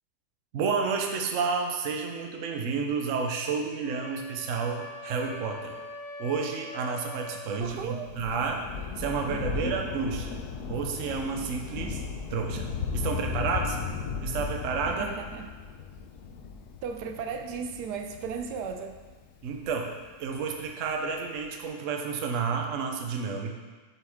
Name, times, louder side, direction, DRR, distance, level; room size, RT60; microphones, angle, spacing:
voice 1, 0.5-5.8 6.2-8.7 9.0-10.4 10.7-12.0 12.3-13.8 14.2-15.1 19.4-23.6, right 5 dB, 60° right, 2 dB, 1.0 m, -30 dB
Wind instrument woodwind instrument, 3.8-7.6, left 2 dB, 30° left, 1.3 m, -42 dB
Thunder, 7.6-20.5 21.4-21.5, left 5 dB, 75° left, 1.2 m, -36 dB
voice 2, 7.6-8.1 14.9-15.5 16.8-19.0, right 6 dB, 85° right, 6 dB, 1.2 m, -35 dB
7.4 x 6.1 x 3.5 m, 1.3 s
omnidirectional pair, 1.7 m